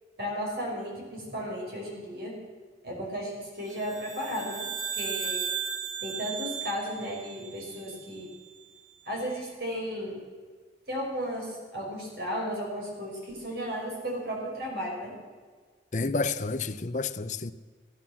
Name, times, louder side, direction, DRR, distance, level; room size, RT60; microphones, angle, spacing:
voice 1, 0.2-2.3 2.8-4.7 4.9-5.4 6.0-8.3 9.1-10.2 10.9-15.1, equal, 65° right, 5.7 m, -34 dB
sound 1, 3.7-8.2, right 7 dB, 45° right, 1.9 m, -36 dB
voice 2, 15.9-17.5, left 3 dB, 45° left, 0.6 m, -30 dB
15.0 x 11.0 x 7.3 m
head